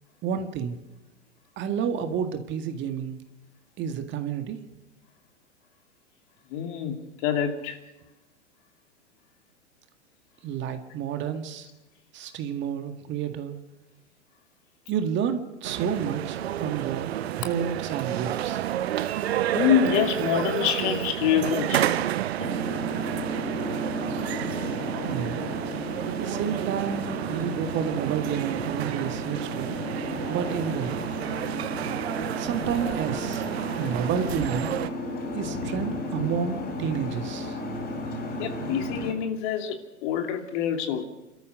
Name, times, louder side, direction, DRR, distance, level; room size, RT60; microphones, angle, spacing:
voice 1, 0.2-0.8 1.6-3.2 3.8-4.6 10.4-11.7 12.1-13.6 14.9-18.7 25.1-25.5 26.2-29.7 30.3-31.0 32.4-33.5 33.8-34.7 35.3-37.6, right 7 dB, 30° right, 6 dB, 1.9 m, -30 dB
voice 2, 6.5-7.0 7.2-7.8 19.0-19.1 19.5-21.9 38.4-41.0, left 9 dB, 45° left, 5 dB, 2.6 m, -26 dB
sound 1, 15.6-34.9, right 12 dB, 60° right, 1.0 m, -30 dB
Boat Water vehicle, 22.4-39.1, equal, 30° left, 5.5 m, -34 dB
29.5 x 13.5 x 6.7 m, 1.0 s
figure-of-eight pair, 100°, 36 cm